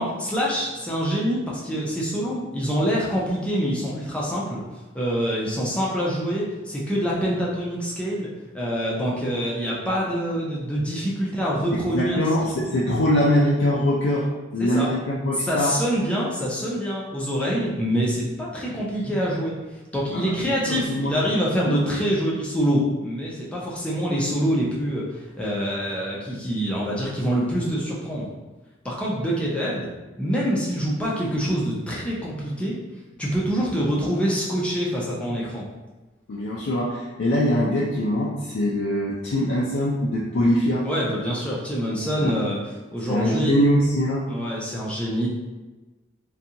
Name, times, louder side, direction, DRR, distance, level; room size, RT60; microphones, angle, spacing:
voice 1, 0.0-4.6 4.9-8.3 8.5-12.2 14.6-14.9 15.4-19.6 19.9-28.3 28.8-29.9 30.2-32.8 33.2-35.7 40.8-43.5 44.3-45.4, equal, 5° left, -6 dB, 0.5 m, -25 dB
voice 2, 11.8-15.7 20.1-21.2 21.6-21.8 36.3-40.9 42.2-42.3 43.1-44.2, equal, 70° left, -5 dB, 0.4 m, -23 dB
2.5 x 2.3 x 2.7 m, 1.2 s
head